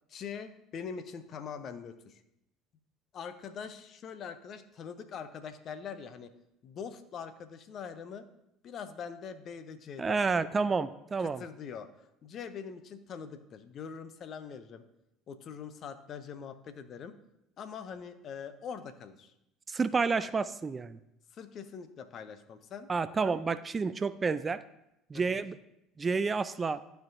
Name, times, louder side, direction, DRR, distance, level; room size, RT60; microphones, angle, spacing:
voice 1, 0.1-2.2 3.1-6.3 6.6-8.3 8.6-10.2 11.2-11.9 12.2-14.8 15.3-17.1 17.6-19.3 21.3-22.9 25.1-25.4, left 6 dB, 50° left, 12 dB, 0.6 m, -43 dB
voice 2, 10.0-11.4 19.7-21.0 22.9-24.6 25.1-25.6 26.0-26.8, right 4 dB, 25° right, 14 dB, 0.3 m, -30 dB
12.0 x 4.5 x 2.6 m, 0.85 s
hypercardioid pair, 65°, 0 cm